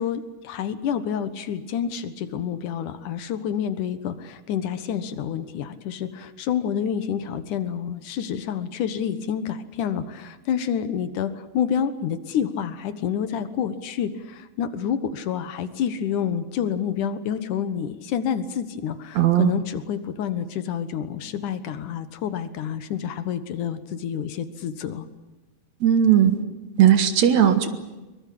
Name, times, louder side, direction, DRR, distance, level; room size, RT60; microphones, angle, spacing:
voice 1, 0.0-25.1, left 8 dB, 85° left, 12 dB, 2.8 m, -28 dB
voice 2, 19.2-19.5 25.8-26.4 26.8-27.7, right 10 dB, 65° right, 10 dB, 2.8 m, -17 dB
23.5 x 21.5 x 8.7 m, 1.1 s
omnidirectional pair, 3.5 m